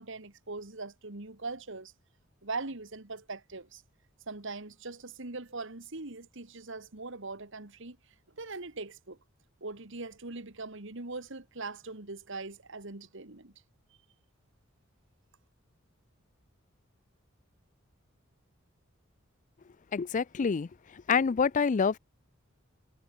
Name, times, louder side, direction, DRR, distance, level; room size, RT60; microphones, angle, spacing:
voice 1, 0.0-1.9 2.4-3.8 4.3-8.0 8.4-9.2 9.6-13.5, right 3 dB, 65° right, 2.2 m, -41 dB
voice 2, 19.9-20.7 21.1-22.0, left 5 dB, 40° left, 0.4 m, -26 dB
head